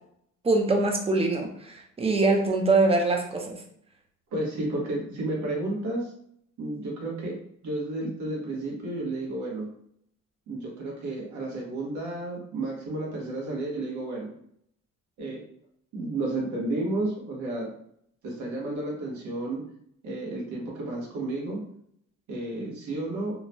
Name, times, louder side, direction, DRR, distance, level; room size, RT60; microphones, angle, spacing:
voice 1, 0.4-3.6, right 3 dB, 20° right, 2 dB, 0.5 m, -23 dB
voice 2, 4.3-6.1 6.6-7.4 7.6-9.7 10.5-14.3 15.2-15.4 15.9-17.7 18.2-19.6 20.0-21.6 22.3-23.3, right 2 dB, 65° right, -2 dB, 1.2 m, -32 dB
3.0 x 2.1 x 2.6 m, 0.69 s
cardioid pair, 100°, 31 cm